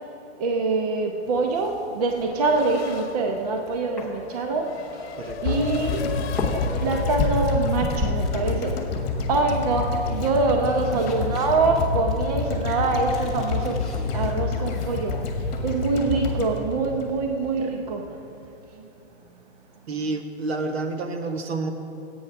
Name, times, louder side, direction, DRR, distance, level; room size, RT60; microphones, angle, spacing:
voice 1, 0.4-4.7 5.0-5.1 5.4-6.1 6.5-8.8 9.3-13.8 14.1-18.2 18.7-18.9, right 3 dB, 35° right, 3 dB, 0.7 m, -25 dB
sound 1, 1.2-16.6, left 3 dB, ahead, 0.6 m, -35 dB
Race car auto racing / Accelerating revving vroom, 2.1-7.8, left 7 dB, 65° left, 1.0 m, -37 dB
voice 2, 5.1-5.6 19.9-21.7, right 3 dB, 65° right, 5 dB, 1.3 m, -29 dB
sound 2, 5.4-17.7 17.9-18.0, left 5 dB, 40° left, 1.7 m, -28 dB
13.0 x 8.8 x 5.8 m, 2.9 s
hypercardioid pair, 165°, 34 cm